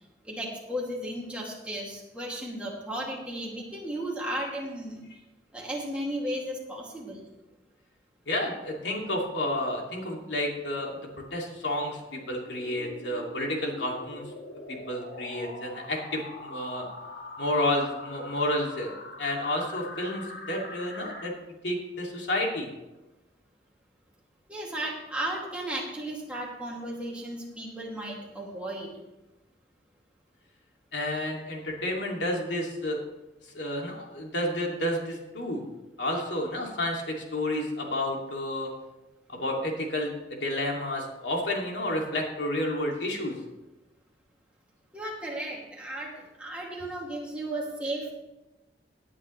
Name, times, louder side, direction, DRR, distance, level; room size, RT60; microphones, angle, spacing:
voice 1, 0.2-5.0 5.5-7.2 24.5-28.9 44.9-48.1, right 1 dB, 5° right, -4 dB, 2.5 m, -35 dB
voice 2, 8.3-14.3 14.7-16.9 17.4-18.9 19.2-21.3 21.6-22.7 30.9-33.0 33.5-35.6 36.0-38.7 39.3-43.4, left 1 dB, 90° left, -1 dB, 2.6 m, -30 dB
sound 1, 12.5-21.3, left 2 dB, 75° left, 1.9 m, -43 dB
17.0 x 9.7 x 3.3 m, 1.0 s
head